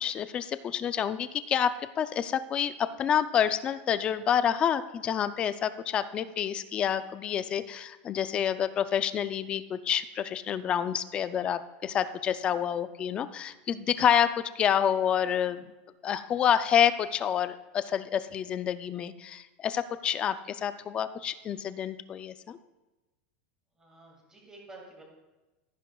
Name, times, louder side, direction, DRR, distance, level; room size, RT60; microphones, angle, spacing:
voice 1, 0.0-15.6 16.0-22.6, left 9 dB, 15° left, 13 dB, 0.3 m, -28 dB
voice 2, 23.8-25.0, right 2 dB, 10° right, -1 dB, 2.1 m, -50 dB
14.5 x 10.5 x 2.3 m, 1.1 s
supercardioid pair, 180°, 6 cm